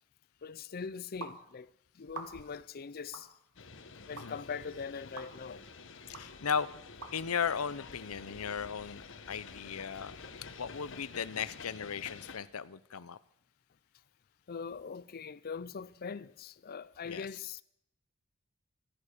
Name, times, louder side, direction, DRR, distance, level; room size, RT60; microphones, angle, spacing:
voice 1, 0.4-3.3 4.1-5.6 9.9-10.0 14.5-17.6, left 5 dB, 45° left, 0.5 m, -42 dB
sound produced by mouth, 1.2-1.4 2.1-2.6 3.1-3.3 4.2-4.3 5.2-5.3 6.1-6.2 7.0-7.1, right 3 dB, 85° right, 2.3 m, -44 dB
sound 1, 3.6-12.4, left 4 dB, 60° left, 1.3 m, -50 dB
voice 2, 6.1-6.7 7.1-10.1 10.6-13.2 17.0-17.3, left 6 dB, 85° left, 0.7 m, -36 dB
15.5 x 13.5 x 6.7 m
head